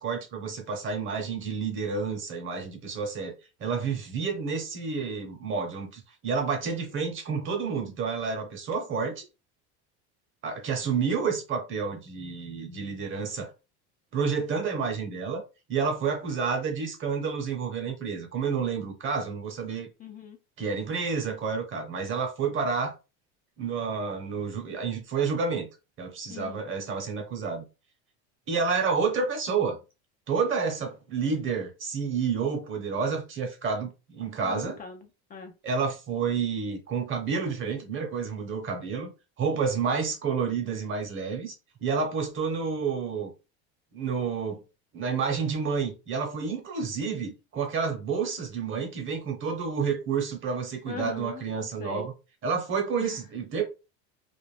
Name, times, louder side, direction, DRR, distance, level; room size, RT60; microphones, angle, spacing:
voice 1, 0.0-9.2 10.4-13.5 14.1-15.4 15.7-19.9 20.6-22.9 23.6-25.7 26.0-27.6 28.5-29.8 30.3-34.8 35.6-39.1 39.4-41.5 41.8-43.3 43.9-44.6 44.9-52.1 52.4-53.6, right 5 dB, 35° right, 1.0 m, -29 dB
voice 2, 20.0-20.4 26.3-26.6 34.4-35.5 50.9-51.4 51.8-52.1 53.0-53.2, left 6 dB, 25° left, 0.4 m, -40 dB
2.5 x 2.2 x 3.2 m
supercardioid pair, 120°, 33 cm